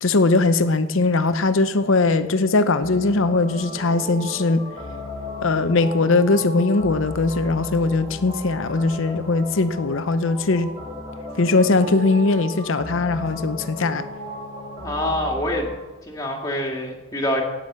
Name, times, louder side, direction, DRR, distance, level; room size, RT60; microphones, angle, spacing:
voice 1, 0.0-4.6 5.4-10.7 11.4-14.0, left 3 dB, 60° left, 12 dB, 0.7 m, -20 dB
sound 1, 2.8-15.8, left 1 dB, 20° right, 3.2 m, -35 dB
voice 2, 14.8-15.7 16.0-17.4, left 1 dB, 15° left, -1 dB, 2.1 m, -25 dB
17.0 x 6.2 x 7.4 m, 1.2 s
head